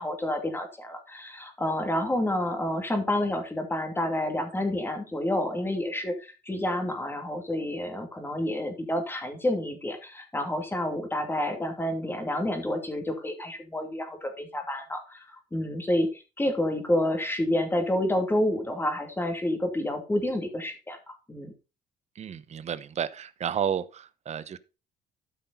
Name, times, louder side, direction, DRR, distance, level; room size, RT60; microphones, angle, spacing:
voice 1, 0.0-21.5, left 1 dB, 15° left, 2.6 m, -29 dB
voice 2, 22.2-24.6, right 8 dB, 40° right, 0.8 m, -32 dB
13.0 x 5.9 x 4.1 m
cardioid pair, 110°, 17 cm